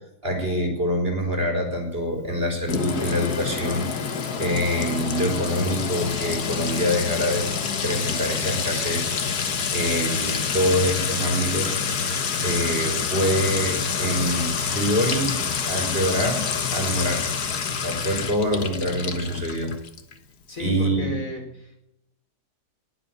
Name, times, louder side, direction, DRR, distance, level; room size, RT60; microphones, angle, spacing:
voice 1, 0.2-3.9 4.4-7.5 7.8-9.1 9.7-11.8 12.4-15.4 15.6-16.5 16.7-17.3 17.8-19.7 20.6-21.1, equal, 35° right, 3 dB, 4.3 m, -25 dB
Sink (filling or washing) / Trickle dribble / Fill (with liquid), 2.7-20.1, left 6 dB, 80° left, 1.9 m, -27 dB
voice 2, 20.5-21.8, equal, 55° left, 2 dB, 4.9 m, -34 dB
20.0 x 7.8 x 9.1 m, 0.83 s
omnidirectional pair, 1.7 m